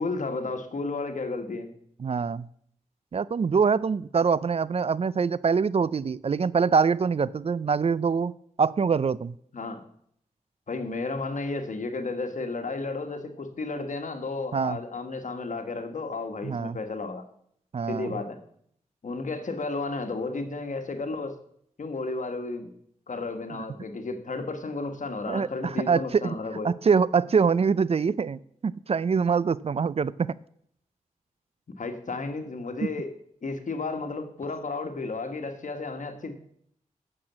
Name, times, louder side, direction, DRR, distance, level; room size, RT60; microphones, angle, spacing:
voice 1, 0.0-1.7 9.5-9.8 10.7-17.2 17.9-18.4 19.0-21.3 21.8-22.7 23.1-26.7 31.8-33.1 33.4-36.3, left 3 dB, 65° left, 6 dB, 1.5 m, -33 dB
voice 2, 2.0-2.5 3.1-8.3 8.6-9.4 14.5-14.8 16.4-16.8 17.7-18.2 25.3-26.4 26.6-30.3, right 5 dB, 45° right, 19 dB, 0.4 m, -24 dB
8.6 x 6.8 x 7.3 m, 0.67 s
cardioid pair, 60°, 14 cm